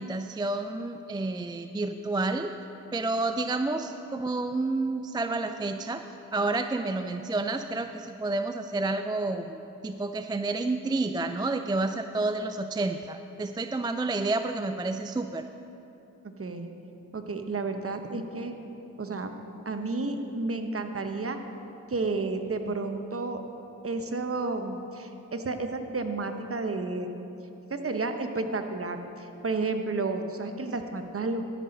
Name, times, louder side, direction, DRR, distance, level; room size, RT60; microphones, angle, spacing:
voice 1, 0.0-2.5 2.9-6.0 6.3-15.4, right 2 dB, 15° right, 8 dB, 0.3 m, -30 dB
voice 2, 16.2-16.7 17.1-18.5 19.0-19.3 19.6-21.4 21.9-23.4 23.8-27.1 27.8-31.4, right 3 dB, 40° right, 6 dB, 0.9 m, -31 dB
13.0 x 5.9 x 5.2 m, 2.9 s
cardioid pair, 40°, 35 cm